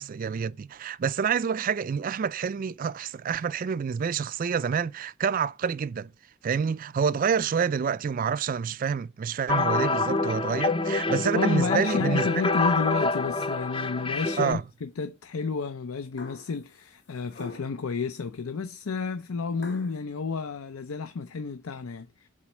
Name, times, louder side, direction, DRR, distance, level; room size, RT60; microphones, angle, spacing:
voice 1, 0.0-6.1 6.4-12.3 14.4-14.6, right 6 dB, 40° right, 0.3 m, -28 dB
sound 1, 9.5-14.5, left 3 dB, 25° left, 0.4 m, -26 dB
voice 2, 11.3-22.3, left 4 dB, 80° left, 0.6 m, -31 dB
sound 2, 16.2-16.6 17.3-17.8 19.6-20.0, left 3 dB, 55° left, 2.7 m, -43 dB
7.3 x 4.3 x 6.0 m
head